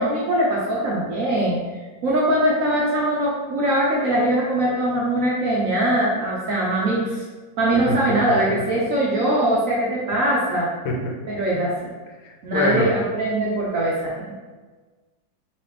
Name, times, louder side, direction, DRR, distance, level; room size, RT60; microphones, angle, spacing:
voice 1, 0.0-1.6 2.0-7.2 7.6-10.7 11.3-11.9 12.4-14.3, right 1 dB, 60° right, -5 dB, 0.9 m, -21 dB
voice 2, 7.9-8.4 10.8-11.1 12.2-12.9, left 2 dB, 90° left, 1 dB, 1.5 m, -25 dB
4.1 x 3.0 x 3.4 m, 1.3 s
omnidirectional pair, 2.1 m